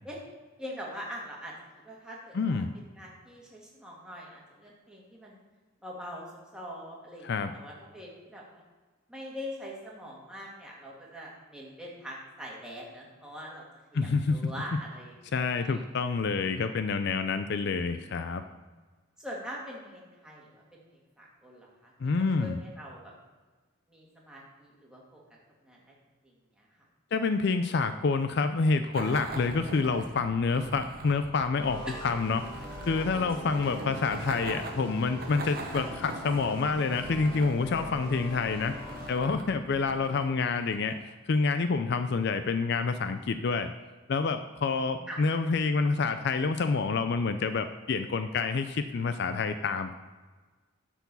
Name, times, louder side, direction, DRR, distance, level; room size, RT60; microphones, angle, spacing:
voice 1, 0.6-1.5 1.8-2.6 3.0-5.4 5.8-6.3 6.5-8.6 9.1-13.6 13.9-15.1 15.6-15.8 19.2-23.1 23.9-25.2 25.6-26.0 26.2-26.9 31.9-32.1 45.1-45.2, equal, 5° right, -4 dB, 2.1 m, -43 dB
voice 2, 2.3-2.7 7.2-7.5 13.9-14.5 15.3-18.4 22.0-22.6 27.1-32.4 32.9-38.7 39.1-41.0 41.3-43.7 44.1-49.9, left 4 dB, 55° left, 9 dB, 0.4 m, -28 dB
sound 1, 28.9-41.1, right 2 dB, 45° right, 1.0 m, -43 dB
sound 2, 31.6-39.1, equal, 25° left, 2.0 m, -42 dB
9.9 x 4.5 x 7.0 m, 1.4 s
head